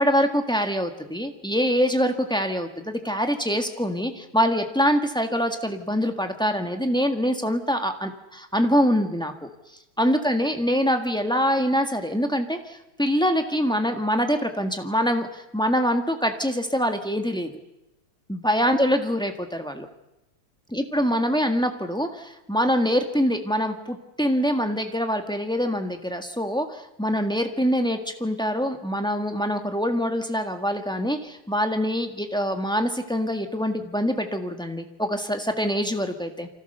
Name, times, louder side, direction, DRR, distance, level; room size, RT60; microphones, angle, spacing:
voice 1, 0.0-9.5 10.0-17.5 18.3-19.9 20.7-36.5, equal, 5° left, 5 dB, 0.6 m, -24 dB
28.5 x 25.0 x 6.8 m, 0.95 s
omnidirectional pair, 3.4 m